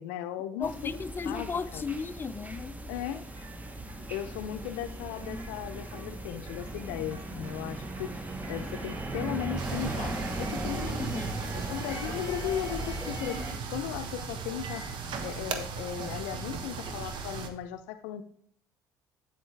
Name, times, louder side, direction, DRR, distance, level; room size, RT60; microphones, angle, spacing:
voice 1, 0.0-0.7 1.3-1.8 2.9-3.2 4.1-8.1 8.5-11.2 11.7-13.4 13.7-14.9 15.2-18.2, left 11 dB, 80° left, 0.5 m, -36 dB
voice 2, 0.6-3.2 10.9-11.5, left 5 dB, 25° left, 0.4 m, -36 dB
sound 1, 0.6-13.6, right 2 dB, 15° right, 1.1 m, -38 dB
sound 2, 3.2-13.5, right 1 dB, 35° right, 2.8 m, -44 dB
sound 3, 9.6-17.5, right 5 dB, 60° right, 1.2 m, -37 dB
8.2 x 8.0 x 3.3 m
hypercardioid pair, 65°, 9 cm